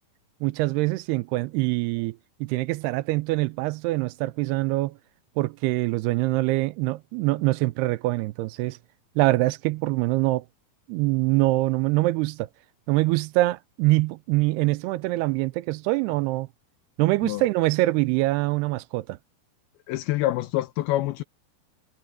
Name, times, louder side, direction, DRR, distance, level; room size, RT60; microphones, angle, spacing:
voice 1, 0.4-4.9 5.4-8.8 9.2-10.5 10.9-12.5 12.9-16.5 17.0-19.2, right 20 dB, 85° right, 2.7 m, -24 dB
voice 2, 19.9-21.2, left 15 dB, 80° left, 2.6 m, -26 dB
omnidirectional pair, 4.6 m